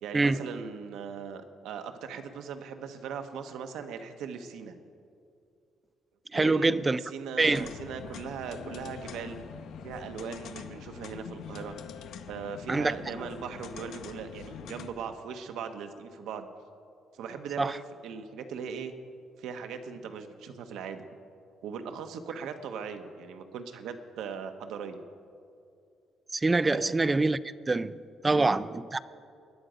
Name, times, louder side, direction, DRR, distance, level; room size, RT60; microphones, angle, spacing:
voice 1, 0.0-4.7 6.3-9.4 9.8-11.8 12.3-16.5 17.1-18.9 19.4-21.0 21.6-25.0 26.7-26.9 28.3-28.5, right 6 dB, 90° right, 1.0 m, -39 dB
voice 2, 6.3-7.0 7.4-7.7 12.7-12.9 17.6-17.8 26.3-27.4 27.7-29.0, right 3 dB, 15° right, 0.3 m, -25 dB
sound 1, 7.5-14.9, left 7 dB, 70° left, 0.8 m, -44 dB
20.0 x 10.5 x 5.0 m
cardioid pair, 160°, 0 cm